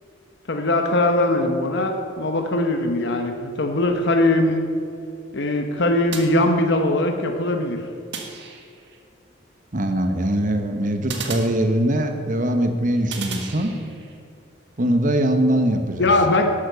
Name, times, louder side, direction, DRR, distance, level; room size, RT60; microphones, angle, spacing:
voice 1, 0.5-4.6 5.3-7.8 16.0-16.4, left 2 dB, 60° left, 4 dB, 1.0 m, -20 dB
sound 1, 6.1-7.0 8.1-9.0 11.1-12.2 13.1-14.2, right 5 dB, 60° right, 1.7 m, -35 dB
voice 2, 9.7-13.7 14.8-16.1, right 1 dB, 40° right, 6 dB, 1.0 m, -21 dB
12.0 x 8.6 x 6.8 m, 2.4 s
head